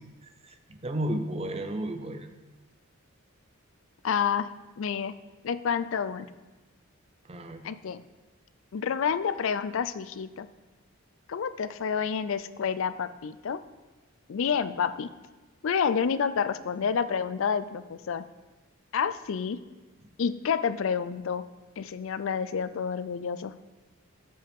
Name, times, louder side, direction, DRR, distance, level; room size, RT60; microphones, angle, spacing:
voice 1, 0.4-2.3 7.3-7.6, right 1 dB, 30° right, 7 dB, 0.6 m, -33 dB
voice 2, 4.0-4.5 4.8-5.1 5.4-6.3 7.6-8.0 8.7-10.5 11.3-13.6 14.3-15.1 15.6-18.2 18.9-19.6 20.2-21.4 21.8-23.5, left 6 dB, 60° left, 14 dB, 0.4 m, -29 dB
14.0 x 5.5 x 3.5 m, 1.2 s
head